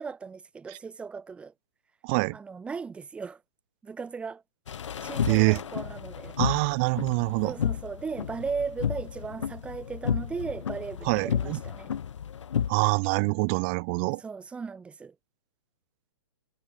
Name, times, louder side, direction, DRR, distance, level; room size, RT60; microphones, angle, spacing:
voice 1, 0.0-1.5 2.3-3.4 3.8-4.4 5.0-6.4 7.4-11.9 14.2-15.1, right 5 dB, 5° right, 1.4 m, -37 dB
voice 2, 2.0-2.4 5.3-5.6 6.4-7.5 11.1-11.6 12.7-14.2, right 34 dB, 25° right, 0.5 m, -25 dB
sound 1, 4.7-12.7, left 8 dB, 80° left, 1.1 m, -32 dB
hypercardioid pair, 155°, 15 cm